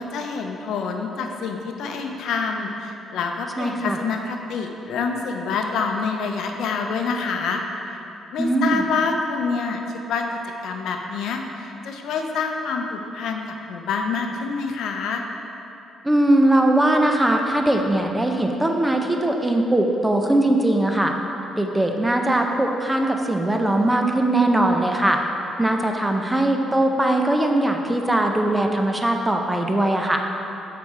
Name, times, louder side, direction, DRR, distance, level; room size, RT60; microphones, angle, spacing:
voice 1, 0.0-7.6 8.3-10.3 10.6-15.2, left 5 dB, 80° left, 3 dB, 0.5 m, -27 dB
voice 2, 3.6-4.0 8.4-8.8 16.0-21.1 21.6-25.2 25.6-30.3, right 1 dB, 10° right, 3 dB, 0.6 m, -20 dB
6.5 x 4.1 x 4.6 m, 2.9 s
cardioid pair, 90°, 0 cm